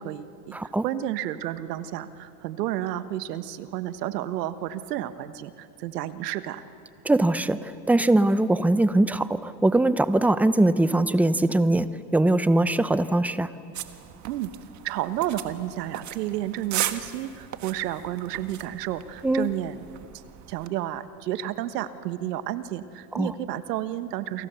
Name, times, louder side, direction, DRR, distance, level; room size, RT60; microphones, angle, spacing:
voice 1, 0.0-6.6 14.2-14.5 14.8-19.8 20.5-24.5, right 13 dB, 80° right, 12 dB, 1.4 m, -31 dB
voice 2, 0.5-0.8 7.0-13.5 19.2-19.5 23.1-23.3, right 2 dB, 5° right, 14 dB, 0.6 m, -22 dB
sound 1, 13.7-20.7, right 11 dB, 40° right, 1.5 m, -37 dB
29.0 x 24.0 x 7.0 m, 2.7 s
supercardioid pair, 110°, 47 cm